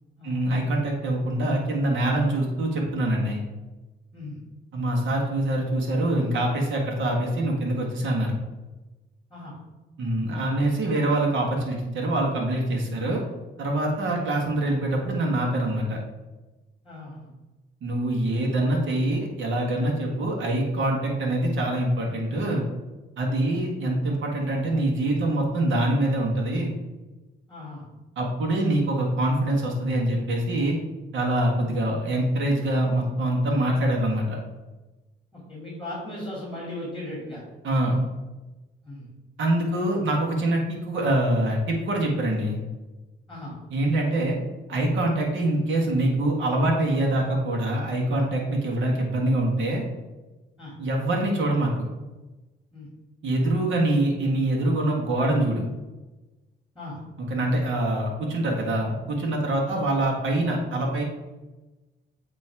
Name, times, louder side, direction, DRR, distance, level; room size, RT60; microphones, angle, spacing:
voice 1, 0.2-3.4 4.7-8.3 10.0-13.2 13.6-16.0 17.8-22.6 23.2-26.7 28.2-30.7 31.1-34.4 37.6-38.0 39.4-42.6 43.7-44.4 44.7-49.8 50.8-51.7 53.2-55.6 57.3-61.0, right 1 dB, 70° right, -1 dB, 1.6 m, -24 dB
voice 2, 16.8-17.3 20.0-20.2 23.4-23.6 27.5-27.9 31.7-31.8 35.3-37.4 37.9-38.1 38.8-39.1 43.3-43.6 50.6-50.8 52.7-52.9 56.7-57.0 59.6-59.8, left 1 dB, ahead, -4 dB, 2.3 m, -38 dB
8.4 x 3.1 x 4.7 m, 1.1 s
cardioid pair, 90°, 20 cm